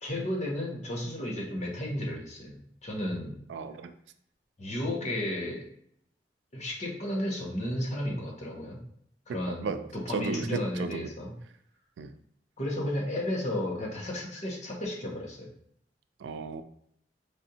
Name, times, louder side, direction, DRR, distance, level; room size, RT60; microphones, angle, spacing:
voice 1, 0.0-3.4 4.6-5.6 6.5-8.8 9.3-9.8 10.0-11.3 12.6-15.5, left 1 dB, 40° left, -2 dB, 1.0 m, -33 dB
voice 2, 3.5-3.9 9.3-11.0 12.0-12.1 16.2-16.6, right 4 dB, 80° right, 10 dB, 0.3 m, -35 dB
5.0 x 2.5 x 2.8 m, 0.68 s
head